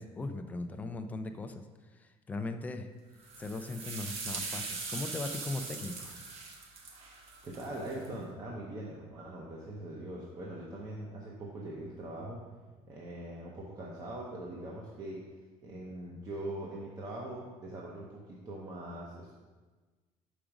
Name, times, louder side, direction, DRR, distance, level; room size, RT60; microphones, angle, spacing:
voice 1, 0.0-1.6 1.9-2.9 3.4-6.2, left 3 dB, 10° left, 7 dB, 0.3 m, -39 dB
sound 1, 3.2-8.1, right 4 dB, 50° right, 1.0 m, -41 dB
voice 2, 7.4-12.4 12.9-15.2 15.6-19.3, right 1 dB, 30° right, -3 dB, 0.8 m, -42 dB
5.1 x 4.9 x 5.9 m, 1.3 s
cardioid pair, 180°, 13 cm